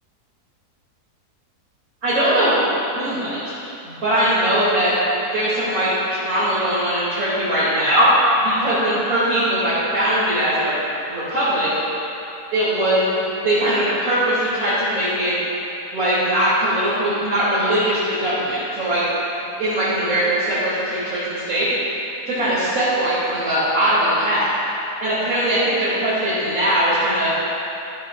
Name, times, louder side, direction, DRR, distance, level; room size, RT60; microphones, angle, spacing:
voice 1, 2.0-2.5 2.9-3.4 3.8-5.0 5.3-8.1 8.4-10.8 11.1-11.7 12.5-15.3 15.9-19.0 19.6-21.7 22.3-24.5 25.0-27.3, right 1 dB, 65° right, -13 dB, 3.5 m, -20 dB
13.5 x 13.5 x 2.5 m, 3.0 s
omnidirectional pair, 1.7 m